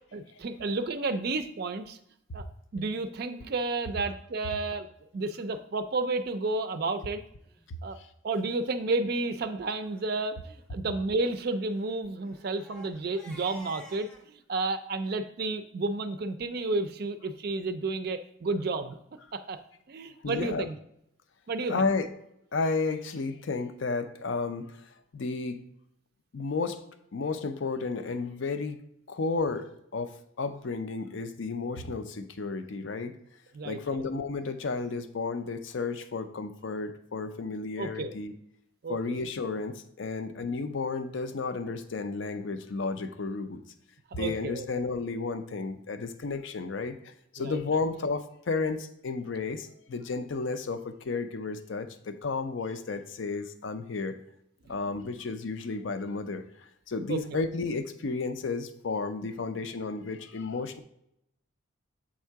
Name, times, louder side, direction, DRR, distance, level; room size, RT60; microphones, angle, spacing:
voice 1, 0.1-2.0 2.3-2.4 2.7-4.9 5.1-7.2 7.8-8.0 8.2-19.0 19.3-19.6 19.9-20.8 21.5-21.8 33.5-34.1 37.8-38.1 38.8-39.2 44.1-44.7 47.4-47.8 57.1-57.2, right 3 dB, 50° right, 9 dB, 0.4 m, -31 dB
Crying sobbing, 7.4-7.6 8.3-8.4 8.7-8.8 9.1-9.4 9.8-10.0 11.2-14.3, right 2 dB, 5° left, 0.6 m, -52 dB
voice 2, 20.2-20.7 21.7-22.1 22.5-24.8 25.1-25.6 26.3-26.8 27.1-28.8 29.1-30.1 30.4-33.2 33.6-38.3 38.9-43.6 44.1-54.2 54.7-56.4 56.9-60.8, left 4 dB, 70° left, 10 dB, 0.5 m, -32 dB
7.5 x 3.6 x 4.6 m, 0.75 s
head